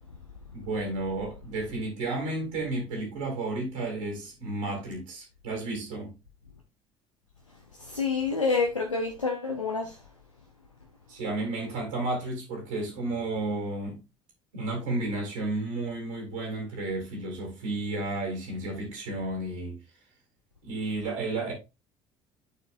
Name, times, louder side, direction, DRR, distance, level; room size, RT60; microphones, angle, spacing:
voice 1, 0.5-6.1 11.1-14.0 14.5-19.8 20.6-21.5, right 2 dB, 75° right, 2.6 m, -32 dB
voice 2, 7.7-10.1, left 4 dB, 90° left, 0.7 m, -28 dB
11.0 x 4.4 x 2.5 m
figure-of-eight pair, 55°, 16 cm